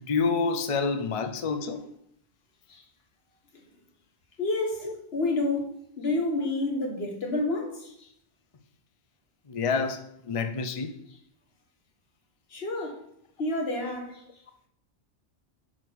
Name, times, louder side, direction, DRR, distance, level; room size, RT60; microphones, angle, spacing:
voice 1, 0.1-1.8 4.8-4.9 9.5-10.9, left 4 dB, 40° left, 0.5 m, -28 dB
voice 2, 4.4-8.1 12.5-13.0 13.4-14.2, left 2 dB, 55° left, 1.5 m, -30 dB
6.2 x 6.0 x 4.6 m
omnidirectional pair, 1.2 m